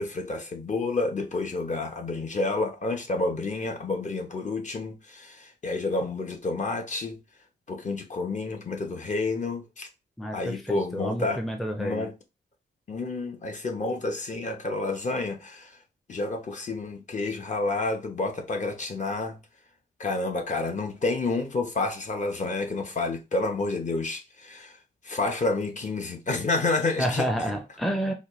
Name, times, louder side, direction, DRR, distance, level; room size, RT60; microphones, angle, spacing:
voice 1, 0.0-7.2 7.7-9.9 10.3-11.4 11.8-12.1 12.9-15.7 16.1-19.4 20.0-24.7 25.0-27.3, left 3 dB, 40° left, 0.9 m, -29 dB
voice 2, 10.2-12.1 27.0-28.1, equal, ahead, 0.5 m, -29 dB
4.2 x 2.3 x 3.1 m
wide cardioid pair, 110°, 19 cm